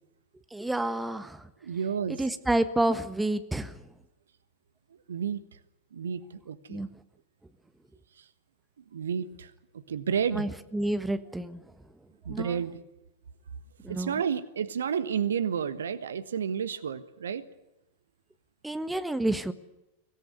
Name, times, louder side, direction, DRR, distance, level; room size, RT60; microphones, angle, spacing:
voice 1, 0.5-1.4 2.1-3.8 6.7-6.9 10.3-11.6 12.3-12.5 13.8-14.2 18.6-19.5, right 1 dB, 5° right, 11 dB, 1.4 m, -29 dB
voice 2, 1.6-2.3 5.1-5.4 5.9-6.8 8.2-8.3 8.9-9.5 9.9-10.5 12.2-12.7 13.9-17.4, right 7 dB, 65° right, 14 dB, 1.4 m, -31 dB
24.0 x 17.5 x 9.6 m, 0.94 s
figure-of-eight pair, 90°, 0 cm